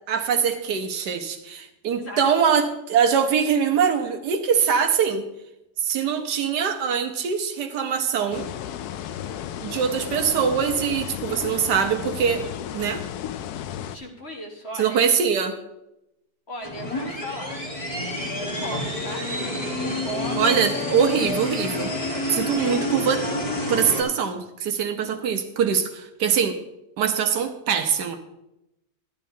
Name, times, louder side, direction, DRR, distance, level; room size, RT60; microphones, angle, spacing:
voice 1, 0.1-5.2 5.8-8.5 9.6-12.4 12.7-13.0 14.8-15.6 20.4-21.9 22.3-23.2 23.7-26.6 27.0-28.2, right 7 dB, 75° right, 7 dB, 1.4 m, -23 dB
sound 1, 8.3-14.0, left 10 dB, 75° left, 1.0 m, -34 dB
voice 2, 13.9-15.0 16.5-17.6 18.4-19.3 19.8-20.6 22.5-22.9, equal, 40° left, 0 dB, 1.6 m, -37 dB
sound 2, 16.6-24.0, left 1 dB, 25° left, 1.2 m, -28 dB
12.0 x 11.0 x 2.7 m, 0.88 s
omnidirectional pair, 1.8 m